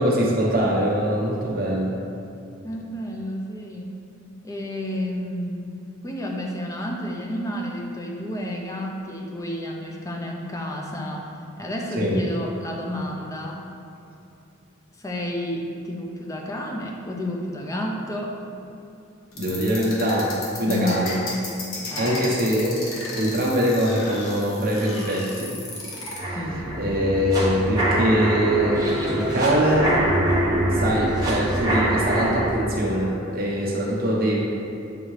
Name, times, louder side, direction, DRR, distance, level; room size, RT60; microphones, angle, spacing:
voice 1, 0.0-2.0 12.0-12.2 19.3-21.1 22.0-22.8 23.1-25.5 26.3-26.4 26.7-30.0 30.7-34.4, equal, 45° right, -4 dB, 1.0 m, -23 dB
voice 2, 2.6-3.9 4.4-5.7 6.0-11.3 11.6-13.6 15.0-18.4 20.7-21.1 21.9-22.4 26.3-26.7, left 1 dB, 15° left, 0 dB, 0.5 m, -30 dB
sound 1, 19.3-26.2, left 2 dB, 90° left, 1.2 m, -34 dB
sound 2, 26.2-32.5, right 1 dB, 20° right, 1.1 m, -24 dB
7.9 x 3.7 x 3.2 m, 2.7 s
head